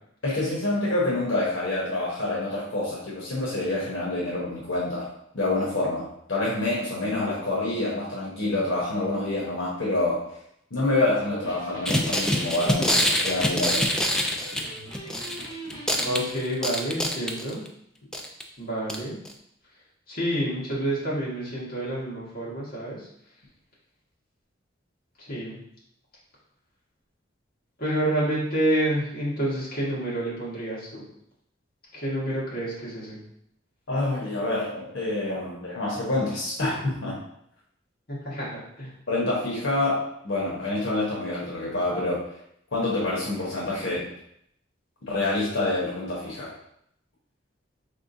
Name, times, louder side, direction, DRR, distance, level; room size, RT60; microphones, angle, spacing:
voice 1, 0.2-5.1 5.3-10.2 10.7-13.9 33.9-37.2 39.1-42.2 42.7-44.1 45.1-46.5, left 2 dB, 85° left, -6 dB, 1.1 m, -27 dB
Electric guitar, 11.4-16.3, right 1 dB, 20° left, 0.9 m, -41 dB
sound 1, 11.9-15.5 15.7-17.7 18.1-18.4 18.9-19.0 19.3-19.4, left 1 dB, 5° left, 0.3 m, -25 dB
voice 2, 16.0-17.6 18.6-19.1 20.1-23.1 25.2-25.6 27.8-31.0 31.9-33.2 38.1-38.9, right 1 dB, 50° left, -7 dB, 1.6 m, -28 dB
4.4 x 3.5 x 2.7 m, 0.73 s
head